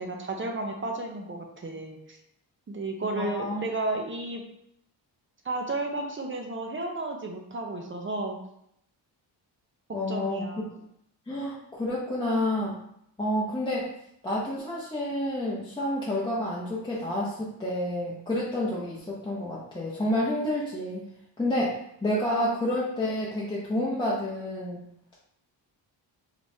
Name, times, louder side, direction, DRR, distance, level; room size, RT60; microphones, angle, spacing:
voice 1, 0.0-2.2 2.7-4.4 5.4-8.4 9.9-10.7, right 2 dB, 30° right, 2 dB, 0.6 m, -33 dB
voice 2, 3.2-3.6 9.9-10.4 11.3-12.8 13.2-14.0 14.2-21.0 21.4-24.8, left 1 dB, 10° left, -7 dB, 0.7 m, -29 dB
5.1 x 3.1 x 2.7 m, 0.74 s
wide cardioid pair, 155°, 44 cm